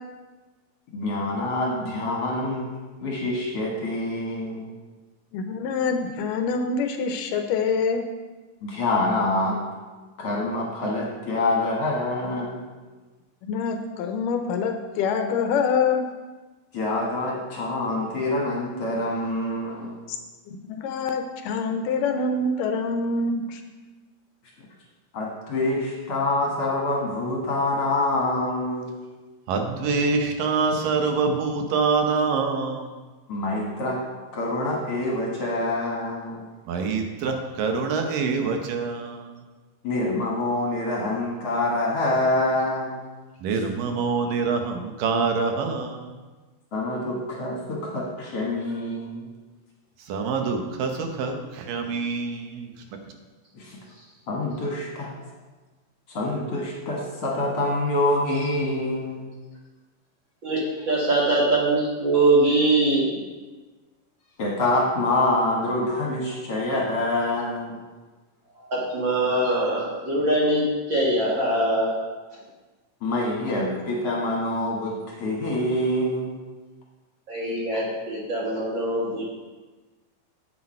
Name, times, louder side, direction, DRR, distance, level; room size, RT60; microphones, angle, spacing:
voice 1, 0.9-2.7 3.0-4.8 8.6-9.6 10.2-12.6 16.7-20.0 25.1-28.9 33.3-34.0 34.3-36.5 39.8-43.0 43.5-43.6 46.7-49.3 53.5-53.8 54.3-55.1 56.1-59.2 64.4-67.8 73.0-76.3, left 2 dB, 50° left, -3 dB, 2.1 m, -26 dB
voice 2, 5.3-8.1 13.4-16.1 20.1-20.2 20.5-23.6, left 4 dB, 80° left, 5 dB, 2.2 m, -25 dB
voice 3, 29.5-33.0 36.7-39.3 43.4-46.1 50.1-52.7, right 4 dB, 80° right, 4 dB, 2.5 m, -25 dB
voice 4, 60.4-63.2 68.6-72.0 77.3-79.5, right 2 dB, 45° right, -5 dB, 1.9 m, -23 dB
9.2 x 8.3 x 4.4 m, 1.3 s
omnidirectional pair, 4.0 m